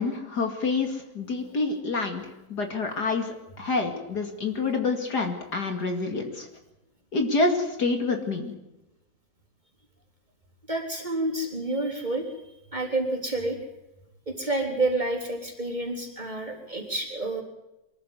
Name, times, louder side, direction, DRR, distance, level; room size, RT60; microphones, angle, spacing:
voice 1, 0.0-2.2 2.5-6.5 7.1-8.5, left 3 dB, 55° left, 4 dB, 2.8 m, -27 dB
voice 2, 10.7-13.6 14.3-17.4, right 2 dB, 20° right, 0 dB, 3.9 m, -29 dB
24.0 x 13.5 x 9.5 m, 0.94 s
omnidirectional pair, 2.1 m